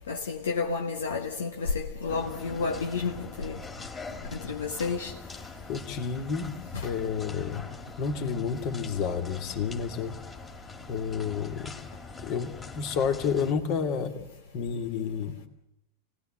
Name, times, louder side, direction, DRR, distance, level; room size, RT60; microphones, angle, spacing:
voice 1, 0.1-3.6 4.3-5.1 6.7-6.9, left 4 dB, 65° left, 1.5 m, -31 dB
sound 1, 2.1-13.5, left 3 dB, 15° left, 2.5 m, -43 dB
voice 2, 5.7-7.7 8.0-10.2 10.9-11.8 12.2-14.2 14.5-15.4, left 6 dB, 40° left, 2.6 m, -30 dB
29.0 x 19.0 x 7.6 m
figure-of-eight pair, 90°, 0 cm